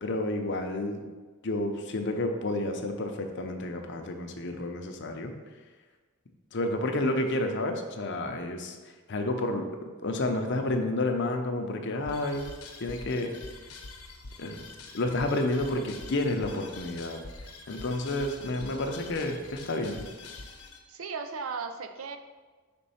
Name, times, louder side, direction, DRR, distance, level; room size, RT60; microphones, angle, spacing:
voice 1, 0.0-1.0 1.4-5.3 6.5-8.8 9.1-9.7 10.0-12.5 12.8-13.3 14.4-14.6 14.9-17.2 17.7-20.1, left 2 dB, 55° left, 5 dB, 0.7 m, -30 dB
sound 1, 12.1-20.8, left 3 dB, 90° left, 0.9 m, -45 dB
voice 2, 20.9-22.2, right 5 dB, 65° right, 7 dB, 0.5 m, -36 dB
5.2 x 3.8 x 5.6 m, 1.4 s
head